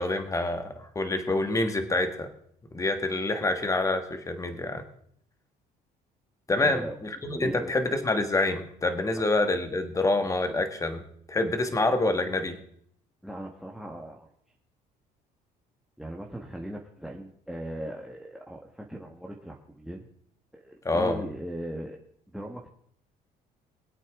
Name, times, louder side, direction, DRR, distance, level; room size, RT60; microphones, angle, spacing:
voice 1, 0.0-2.3 2.7-4.8 6.5-11.0 11.3-12.6 20.8-21.2, left 2 dB, 20° left, 7 dB, 1.6 m, -27 dB
voice 2, 6.5-7.0 7.3-7.7 13.2-14.3 16.0-20.1 20.5-22.0 22.3-22.7, right 1 dB, ahead, 1 dB, 1.4 m, -38 dB
22.5 x 8.3 x 3.7 m, 0.66 s
cardioid pair, 110°, 17 cm